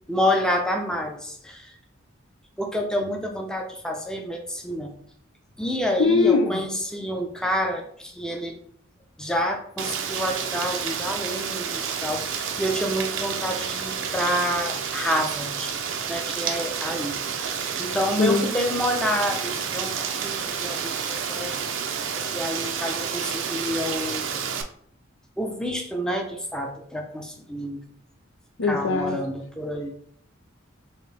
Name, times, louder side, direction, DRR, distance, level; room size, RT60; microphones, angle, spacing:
voice 1, 0.1-1.8 2.6-4.9 5.6-8.6 9.2-15.7 16.1-17.5 17.8-21.8 22.1-24.4 25.4-27.8 28.6-29.9, equal, 5° left, 2 dB, 0.6 m, -28 dB
voice 2, 6.0-6.6 18.2-18.4 28.6-29.2, left 4 dB, 80° left, 5 dB, 0.6 m, -21 dB
Rain, 9.8-24.6, right 7 dB, 65° right, 0.5 m, -30 dB
4.4 x 2.7 x 3.4 m, 0.64 s
head